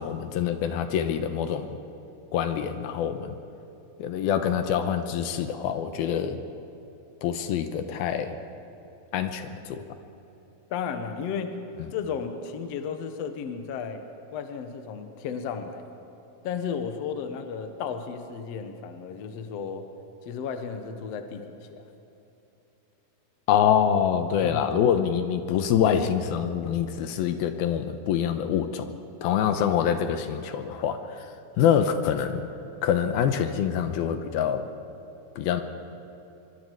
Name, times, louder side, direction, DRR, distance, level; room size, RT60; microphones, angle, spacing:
voice 1, 0.0-1.8 2.3-3.4 4.0-6.4 7.2-8.4 9.1-9.8 23.5-28.9 29.2-31.3 31.6-32.5 32.8-34.7 35.4-35.6, left 8 dB, 80° left, 8 dB, 2.7 m, -25 dB
voice 2, 10.7-11.6 11.9-14.0 14.3-15.8 16.4-19.9 20.2-21.5 21.7-21.8 24.4-24.6, left 6 dB, 60° left, 7 dB, 1.8 m, -33 dB
25.0 x 23.0 x 4.7 m, 2.9 s
omnidirectional pair, 4.4 m